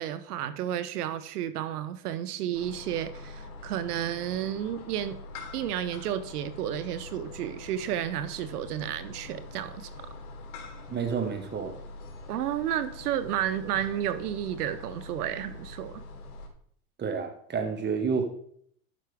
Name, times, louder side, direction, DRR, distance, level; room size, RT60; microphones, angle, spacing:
voice 1, 0.0-5.2 5.5-9.9 12.3-16.0, right 10 dB, 90° right, 13 dB, 0.8 m, -32 dB
sound 1, 2.5-16.5, left 2 dB, 55° left, 2.7 m, -44 dB
voice 2, 10.9-11.7 17.0-18.3, right 5 dB, 25° right, 6 dB, 1.5 m, -29 dB
12.5 x 5.7 x 3.5 m, 0.64 s
supercardioid pair, 120°, 45 cm